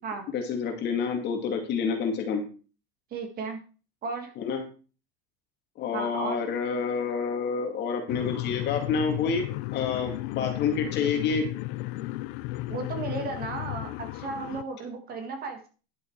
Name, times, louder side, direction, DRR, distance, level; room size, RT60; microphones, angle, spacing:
voice 1, 0.3-2.4 4.4-4.6 5.8-11.4, left 5 dB, 35° left, 4 dB, 2.5 m, -28 dB
voice 2, 3.1-3.6 4.0-4.3 5.9-6.4 12.7-15.7, right 4 dB, 30° right, 6 dB, 1.8 m, -34 dB
sound 1, 8.1-14.6, left 18 dB, 60° left, 0.6 m, -34 dB
11.5 x 7.9 x 4.7 m, 0.36 s
cardioid pair, 175°, 31 cm